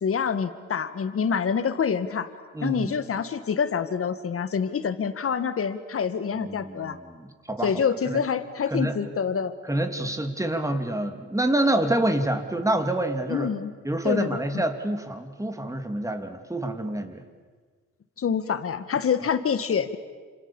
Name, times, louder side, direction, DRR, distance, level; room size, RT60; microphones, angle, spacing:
voice 1, 0.0-2.3 2.6-7.0 7.6-9.5 13.3-13.7 14.0-14.6 18.2-20.0, left 6 dB, 45° left, 11 dB, 2.0 m, -26 dB
voice 2, 2.5-2.9 6.3-7.7 8.1-8.2 8.7-8.9 9.6-13.5 13.8-17.2, right 1 dB, 10° right, 6 dB, 2.9 m, -27 dB
29.0 x 27.0 x 7.3 m, 1.5 s
cardioid pair, 90°, 30 cm